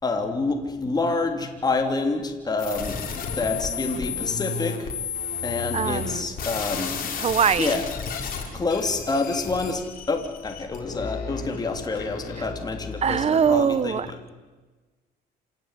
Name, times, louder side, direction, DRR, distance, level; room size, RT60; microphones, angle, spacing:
voice 1, 0.0-3.0 3.3-4.9 5.4-7.0 7.6-7.8 8.5-14.2, left 3 dB, 25° left, 4 dB, 3.2 m, -27 dB
sound 1, 2.6-13.8, left 5 dB, 55° left, 5.3 m, -33 dB
voice 2, 5.7-6.3 7.2-7.8 13.0-14.1, right 7 dB, 40° right, 17 dB, 1.2 m, -22 dB
27.0 x 18.0 x 9.8 m, 1.3 s
cardioid pair, 110°, 17 cm